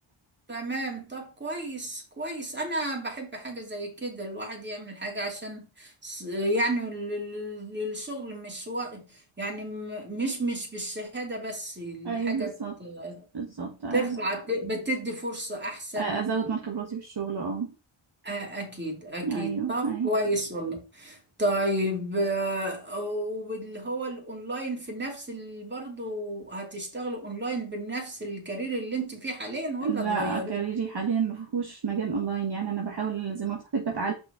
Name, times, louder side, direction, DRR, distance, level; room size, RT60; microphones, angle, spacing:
voice 1, 0.5-12.5 12.8-13.2 13.9-16.4 18.2-30.6, right 1 dB, 20° right, 2.9 m, -32 dB
voice 2, 12.0-12.8 13.3-14.2 16.0-17.7 19.2-20.1 29.8-34.1, right 6 dB, 50° right, 1.4 m, -30 dB
5.6 x 4.7 x 4.9 m
wide cardioid pair, 90°, 50 cm